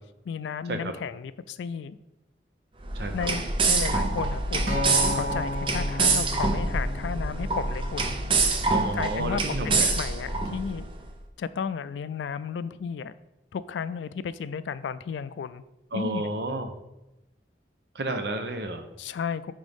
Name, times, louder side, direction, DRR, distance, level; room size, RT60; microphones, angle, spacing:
voice 1, 0.3-2.0 3.1-4.8 5.1-8.2 9.0-10.8 11.4-13.1 13.5-15.6 15.9-16.3 19.0-19.5, left 6 dB, 85° left, 15 dB, 0.3 m, -33 dB
sound 1, 2.8-10.9, right 3 dB, 30° right, 0.6 m, -26 dB
voice 2, 2.9-3.3 8.7-9.9 15.9-16.7 17.9-18.8, right 1 dB, 70° right, 7 dB, 0.8 m, -31 dB
Acoustic guitar, 4.7-8.9 9.8-9.9, left 1 dB, 85° right, 1.9 m, -34 dB
9.1 x 3.6 x 3.5 m, 0.95 s
head